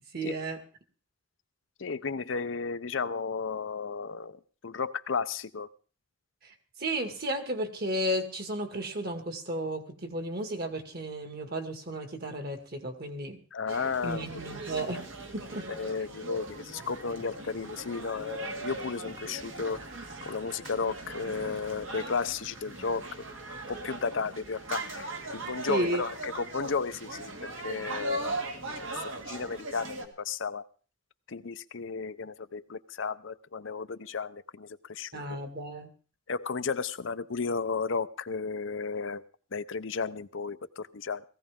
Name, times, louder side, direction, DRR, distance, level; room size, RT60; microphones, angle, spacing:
voice 1, 0.1-0.6 6.4-6.5 6.8-13.4 14.0-15.0 15.3-15.7 25.7-26.0 35.1-35.9, right 1 dB, 50° right, 6 dB, 2.1 m, -33 dB
voice 2, 1.8-5.7 13.5-14.2 15.7-19.8 20.3-23.3 23.7-27.3 27.6-28.9 29.3-30.6 31.3-35.5 36.3-39.2 39.5-41.2, left 5 dB, 70° left, 12 dB, 0.7 m, -34 dB
sound 1, 13.7-30.1, right 2 dB, 80° right, 2.3 m, -39 dB
18.0 x 15.5 x 3.7 m, 0.39 s
head